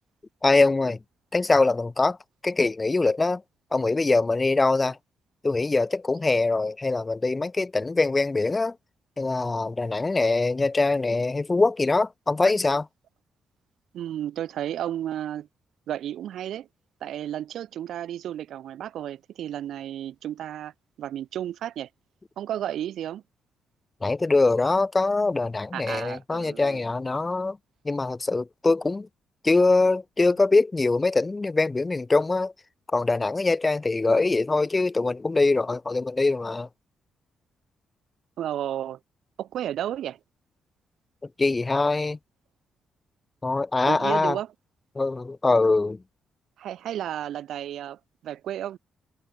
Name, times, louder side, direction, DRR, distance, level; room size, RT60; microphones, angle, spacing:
voice 1, 0.4-1.0 1.3-2.2 2.4-3.4 3.7-5.0 5.4-8.8 9.2-12.9 24.0-27.6 27.8-29.1 29.4-32.5 32.9-36.7 41.4-42.2 43.4-44.4 44.9-46.0, left 3 dB, 20° left, 1.3 m, -23 dB
voice 2, 13.9-15.5 15.9-16.7 17.0-20.7 21.0-21.9 22.4-23.2 25.7-26.8 38.4-39.0 39.4-40.2 43.9-44.5 46.6-48.8, right 11 dB, 75° right, 1.8 m, -32 dB
cardioid pair, 140°, 0 cm